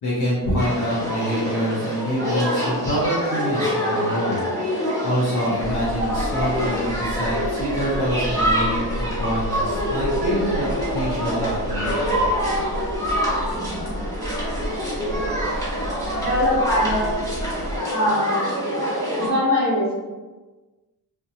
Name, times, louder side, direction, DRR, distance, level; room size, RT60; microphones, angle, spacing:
voice 1, 0.0-10.7 10.9-12.3, equal, 65° left, -8 dB, 0.8 m, -26 dB
sound 1, 0.6-19.3, equal, 10° left, 1.2 m, -26 dB
sound 2, 5.6-17.8, left 1 dB, 20° right, 0.3 m, -32 dB
voice 2, 16.1-17.1 17.9-18.6 19.2-20.1, left 1 dB, 35° left, -8 dB, 1.2 m, -22 dB
2.5 x 2.2 x 2.7 m, 1.2 s
wide cardioid pair, 115°, 41 cm